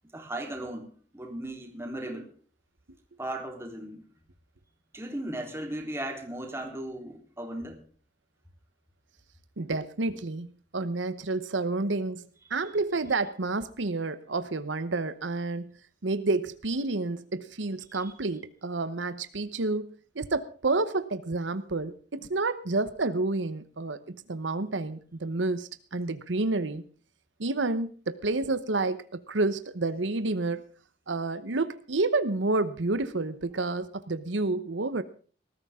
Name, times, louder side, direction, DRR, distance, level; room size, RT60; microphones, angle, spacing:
voice 1, 0.1-2.3 3.2-4.1 4.9-7.8 17.9-18.1, right 1 dB, 15° right, 2 dB, 3.6 m, -37 dB
voice 2, 9.6-12.2 12.5-15.7 16.0-26.8 27.4-30.6 31.1-35.0, right 3 dB, 85° right, 12 dB, 1.0 m, -29 dB
20.0 x 13.5 x 3.7 m, 0.41 s
head